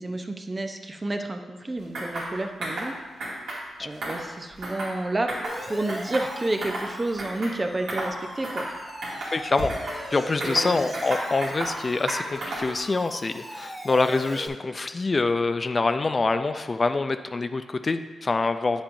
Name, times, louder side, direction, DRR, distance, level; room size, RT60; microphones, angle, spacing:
voice 1, 0.0-2.9 3.8-5.3 5.6-8.6 10.4-10.7, right 2 dB, 25° right, 5 dB, 0.6 m, -30 dB
sound 1, 1.9-2.3 2.6-2.9 3.2-3.6 3.9-5.0 5.3-5.6 5.9-6.9 7.2-7.6 7.9-8.1 8.4-8.7 9.0-10.0 10.4-11.8 12.1-12.8, right 1 dB, 85° right, 2.3 m, -33 dB
Siren, 5.4-14.5, equal, 10° right, 1.5 m, -39 dB
voice 2, 9.3-9.7 10.1-18.8, left 3 dB, 35° left, 9 dB, 0.3 m, -25 dB
8.8 x 7.1 x 2.6 m, 1.3 s
cardioid pair, 90°, 0 cm